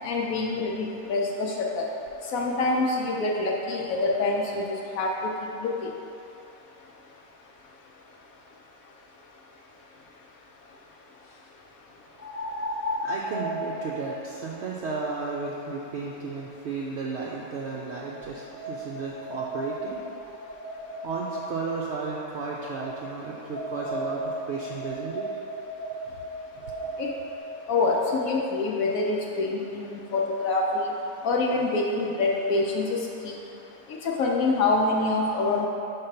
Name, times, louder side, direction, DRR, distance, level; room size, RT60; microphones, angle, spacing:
voice 1, 0.0-1.9 2.3-4.6 4.9-5.1 5.6-5.8 27.0-27.1 27.7-30.9 31.2-33.3 34.0-35.7, left 3 dB, 75° left, -2 dB, 1.0 m, -25 dB
sound 1, 9.6-9.7 12.2-17.3 18.1-21.8 22.8-27.4, right 1 dB, 35° left, 0.8 m, -36 dB
voice 2, 12.6-20.0 21.0-25.3, right 4 dB, 65° right, -4 dB, 0.7 m, -34 dB
5.2 x 3.9 x 5.7 m, 2.8 s
omnidirectional pair, 1.6 m